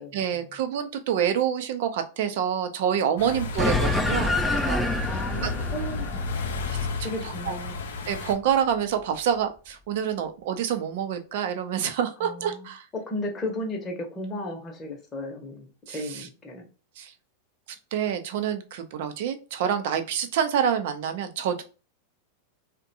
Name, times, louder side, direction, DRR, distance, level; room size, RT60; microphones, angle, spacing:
voice 1, 0.0-4.8 5.1-5.5 6.7-7.1 7.5-7.6 8.0-12.8 15.9-16.3 17.0-17.1 17.9-21.6, right 8 dB, 65° right, 8 dB, 0.5 m, -27 dB
sound 1, 3.2-8.3, left 4 dB, 85° left, 0.5 m, -32 dB
voice 2, 3.2-4.5 5.1-6.2 7.0-7.8 12.2-12.7 12.9-16.6, left 1 dB, 25° left, 0 dB, 0.8 m, -35 dB
sound 2, 3.6-8.3, left 1 dB, 5° left, 0.3 m, -28 dB
2.6 x 2.1 x 2.7 m, 0.34 s
hypercardioid pair, 115°, 0 cm